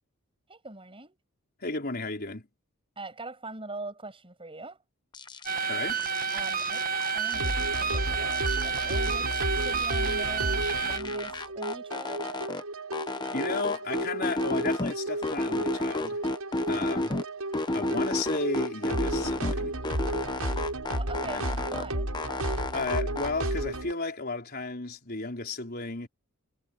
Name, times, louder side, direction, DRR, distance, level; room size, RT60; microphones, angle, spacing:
voice 1, 0.5-1.2 3.0-4.8 6.3-12.2 20.9-22.1, right 2 dB, 25° right, 8.0 m, -42 dB
voice 2, 1.6-2.5 5.6-6.0 13.3-16.2 16.7-17.2 17.7-19.8 21.3-21.5 22.7-26.1, left 3 dB, 45° left, 4.5 m, -33 dB
sound 1, 5.1-5.7 6.0-8.0 8.3-10.3 10.6-12.6 12.9-14.9 15.2-17.2 17.5-19.5 19.8-21.9 22.1-23.3, left 2 dB, 20° left, 0.9 m, -32 dB
sound 2, 5.5-11.0, right 6 dB, 40° right, 1.6 m, -30 dB
sound 3, 7.3-23.9, right 1 dB, 80° right, 7.0 m, -33 dB
head